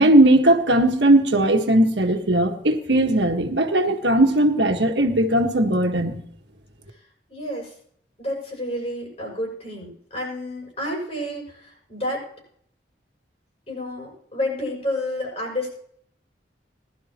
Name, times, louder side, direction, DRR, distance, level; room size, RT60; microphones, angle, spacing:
voice 1, 0.0-6.2, right 1 dB, 80° right, 4 dB, 1.6 m, -18 dB
voice 2, 7.3-7.8 8.2-12.3 13.7-15.7, left 1 dB, 35° left, -1 dB, 7.1 m, -30 dB
20.5 x 12.0 x 3.0 m, 0.63 s
head